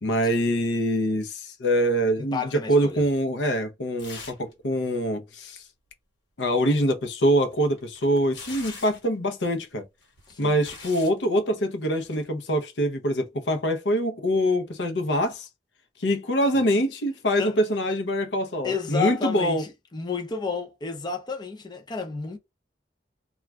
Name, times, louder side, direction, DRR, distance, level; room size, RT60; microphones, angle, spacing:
voice 1, 0.0-5.6 6.4-9.8 10.4-15.5 16.0-19.6, equal, 70° left, 0.7 m, -24 dB
voice 2, 2.2-3.0 10.3-10.5 17.4-17.6 18.6-22.4, left 5 dB, 25° left, 0.5 m, -31 dB
sound 1, 4.0-4.5 4.8-4.9 7.3-9.1 10.0-11.2 12.0-12.2, left 4 dB, 85° left, 1.4 m, -43 dB
2.4 x 2.3 x 3.2 m
head